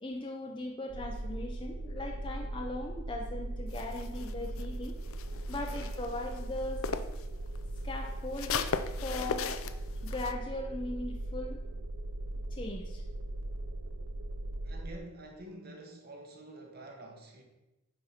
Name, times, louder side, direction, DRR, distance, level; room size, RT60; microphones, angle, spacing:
voice 1, 0.0-5.0 5.5-7.2 7.8-8.7 9.0-9.5 10.0-11.6 12.5-13.0, left 2 dB, 25° left, 1 dB, 0.7 m, -39 dB
sound 1, 0.9-15.0, right 1 dB, 80° right, 0.7 m, -39 dB
sound 2, 3.7-7.2 7.6-10.3, left 6 dB, 75° left, 0.5 m, -38 dB
voice 2, 14.6-17.4, right 2 dB, 45° right, 1 dB, 1.6 m, -48 dB
9.7 x 5.3 x 4.4 m, 0.98 s
head